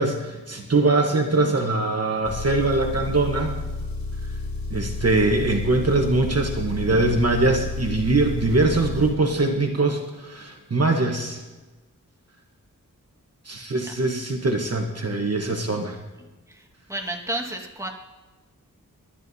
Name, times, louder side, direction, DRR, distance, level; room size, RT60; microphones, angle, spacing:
voice 1, 0.0-3.5 4.7-11.4 13.4-16.0, right 2 dB, 45° right, 2 dB, 1.3 m, -22 dB
Engine, 2.2-9.1, left 2 dB, 90° left, 3.1 m, -31 dB
voice 2, 16.2-17.9, right 1 dB, 10° right, 1 dB, 1.7 m, -32 dB
22.0 x 10.0 x 2.8 m, 1.2 s
wide cardioid pair, 85°, 33 cm